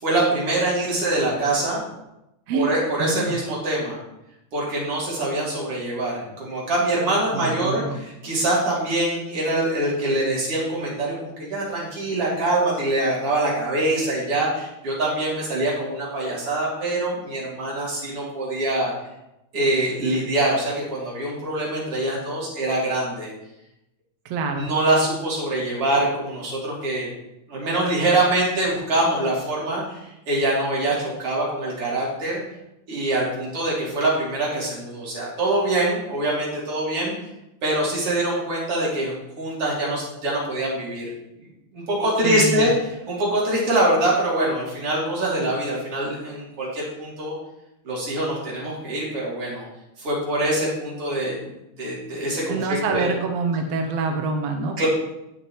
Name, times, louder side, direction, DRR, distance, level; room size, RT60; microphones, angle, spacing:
voice 1, 0.0-1.8 2.5-4.0 4.5-18.9 19.5-23.3 24.5-27.1 27.5-32.4 32.9-37.1 37.6-41.1 41.4-47.4 47.9-49.6 50.0-53.1 54.8-54.9, right 1 dB, 45° right, -5 dB, 3.7 m, -24 dB
voice 2, 3.0-3.4 7.3-8.0 24.2-24.7 42.2-42.7 52.5-54.9, right 4 dB, 75° right, 4 dB, 1.5 m, -26 dB
17.5 x 6.1 x 3.1 m, 0.89 s
omnidirectional pair, 3.7 m